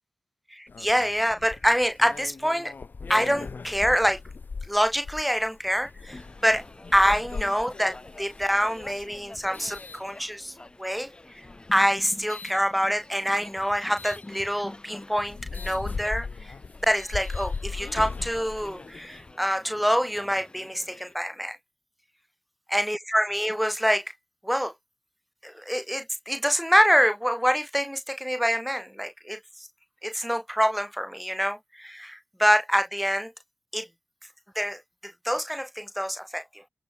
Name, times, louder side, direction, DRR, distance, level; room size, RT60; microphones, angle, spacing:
voice 1, 0.5-2.7 3.1-4.2 4.7-6.6 6.9-10.5 10.8-11.1 11.7-16.3 16.8-21.6 22.7-24.0 24.4-24.7 25.4-29.4 30.0-33.3 33.7-33.9 34.5-36.4, equal, ahead, 1.2 m, -26 dB
sound 1, 0.7-10.7 11.3-12.6 14.0-14.2 14.8-14.9 15.1-19.3, left 4 dB, 65° left, 2.3 m, -38 dB
sound 2, 6.1-21.1, left 2 dB, 25° left, 5.7 m, -47 dB
open air
cardioid pair, 55°, 3 cm